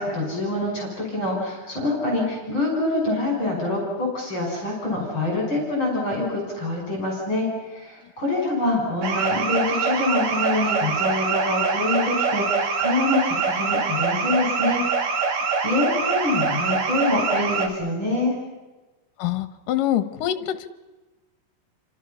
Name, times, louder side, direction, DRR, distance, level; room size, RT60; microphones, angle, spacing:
voice 1, 0.0-14.8 15.2-18.3, left 2 dB, 35° left, -2 dB, 6.5 m, -25 dB
alarm house security cu, 9.0-17.7, right 5 dB, 65° right, 3.5 m, -24 dB
voice 2, 19.2-20.7, left 12 dB, 75° left, 11 dB, 2.8 m, -25 dB
29.5 x 26.0 x 5.7 m, 1.2 s
omnidirectional pair, 4.0 m